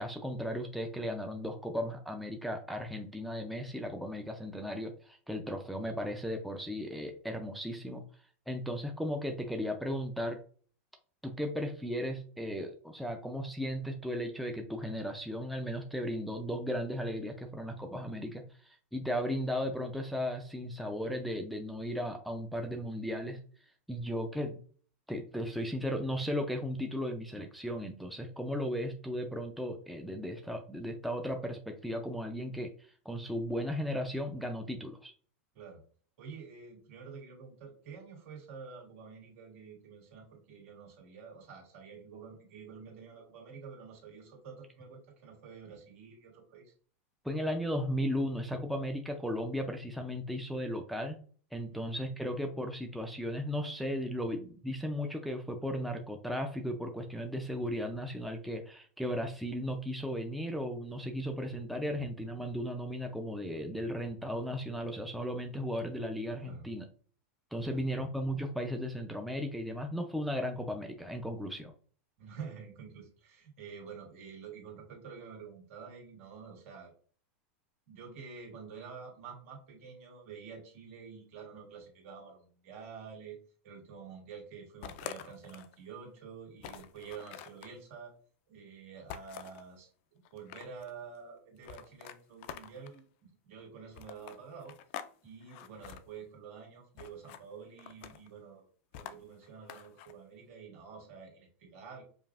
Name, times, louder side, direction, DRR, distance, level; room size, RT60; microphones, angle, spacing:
voice 1, 0.0-8.0 8.5-10.4 11.2-23.4 23.9-24.6 25.1-32.7 33.1-35.1 47.2-51.2 51.5-66.9 67.5-71.7, equal, ahead, 4 dB, 0.4 m, -36 dB
voice 2, 36.2-46.7 51.7-51.9 61.9-62.0 66.4-66.6 67.6-68.1 72.2-76.9 77.9-83.4 83.6-88.1 88.5-94.7 95.2-98.7 98.9-102.0, right 6 dB, 70° right, 0 dB, 1.8 m, -48 dB
sound 1, 84.8-85.8 86.2-86.3 86.6-87.7 89.1-89.6 90.2-90.9 91.6-93.0 93.9-95.1 95.4-96.0 97.0-97.4 97.8-98.3 98.9-100.1, left 9 dB, 60° left, 0.4 m, -46 dB
5.2 x 2.5 x 2.4 m, 0.43 s
supercardioid pair, 125°, 7 cm